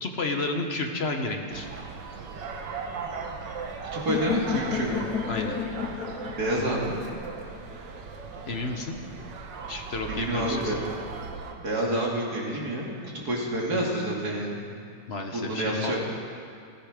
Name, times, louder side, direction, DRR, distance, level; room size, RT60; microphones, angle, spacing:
voice 1, 0.0-1.7 5.3-5.6 8.5-9.0 9.7-10.7 15.1-16.0, left 2 dB, 40° left, 4 dB, 1.2 m, -31 dB
sound 1, 1.5-11.5, right 5 dB, 85° right, 1.8 m, -38 dB
voice 2, 3.9-4.9 6.3-7.0 10.1-11.0 11.6-12.9 13.2-14.6 15.3-16.0, right 1 dB, 60° right, -3 dB, 3.0 m, -28 dB
sound 2, 4.1-8.0, left 8 dB, 70° left, 1.1 m, -32 dB
16.0 x 14.0 x 5.1 m, 2.4 s
omnidirectional pair, 1.9 m